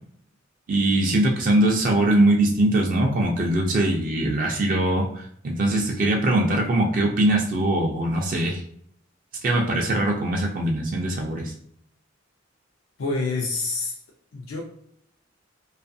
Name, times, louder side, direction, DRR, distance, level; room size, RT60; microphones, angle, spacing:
voice 1, 0.7-8.6 9.4-11.5, right 1 dB, 45° right, 1 dB, 0.4 m, -22 dB
voice 2, 13.0-13.9 14.3-14.6, left 3 dB, 90° left, -1 dB, 0.5 m, -27 dB
2.5 x 2.3 x 2.6 m, 0.69 s
head